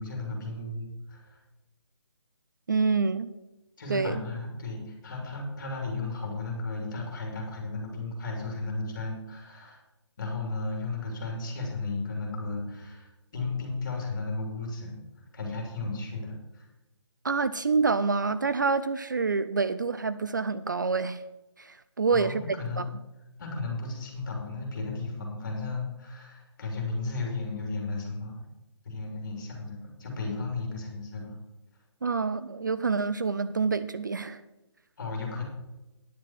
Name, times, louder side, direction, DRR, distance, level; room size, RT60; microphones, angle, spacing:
voice 1, 0.0-1.4 3.8-9.8 10.2-14.9 15.3-16.7 22.1-22.9 23.4-28.4 28.8-31.4 35.0-35.4, left 3 dB, 40° left, 0 dB, 3.3 m, -34 dB
voice 2, 2.7-3.3 3.9-4.2 17.2-21.2 21.6-22.4 22.8-22.9 32.0-34.4, right 4 dB, 40° right, 14 dB, 0.3 m, -27 dB
10.0 x 7.8 x 5.9 m, 1.0 s
hypercardioid pair, 175°, 15 cm